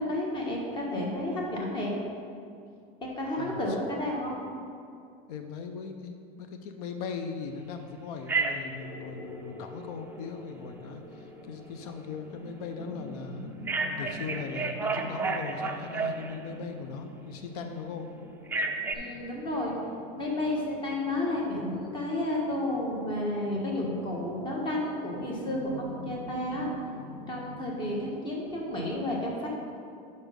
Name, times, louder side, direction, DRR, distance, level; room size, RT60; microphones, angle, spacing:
voice 1, 0.0-1.9 3.0-4.4 18.9-19.7 20.2-26.7 27.3-29.5, left 1 dB, 25° left, -2 dB, 1.4 m, -31 dB
voice 2, 3.4-3.8 5.3-13.5 14.0-18.1, left 5 dB, 90° left, 6 dB, 0.6 m, -39 dB
Telephone, 8.3-8.8 13.7-16.5 18.5-18.9, right 3 dB, 10° right, 0.4 m, -30 dB
sound 1, 8.8-28.1, left 1 dB, 60° left, 1.7 m, -46 dB
6.2 x 5.5 x 5.1 m, 2.4 s
cardioid pair, 145°, 19 cm